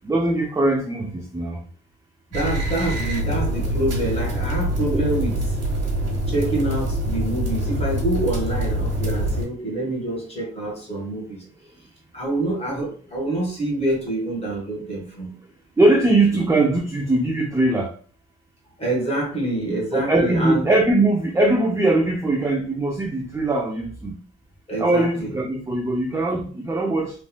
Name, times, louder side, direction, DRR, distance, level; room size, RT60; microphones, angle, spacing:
voice 1, 0.0-1.6 4.9-5.0 15.8-17.9 19.9-24.1 24.8-27.1, right 2 dB, 10° right, 1 dB, 0.4 m, -21 dB
voice 2, 2.3-5.5 6.3-11.4 12.1-15.3 18.8-20.7 24.7-25.4, right 2 dB, 20° left, -1 dB, 1.5 m, -26 dB
sound 1, 2.3-9.4, right 1 dB, 55° right, 1.4 m, -25 dB
3.2 x 2.6 x 2.2 m, 0.42 s
cardioid pair, 90°, 30 cm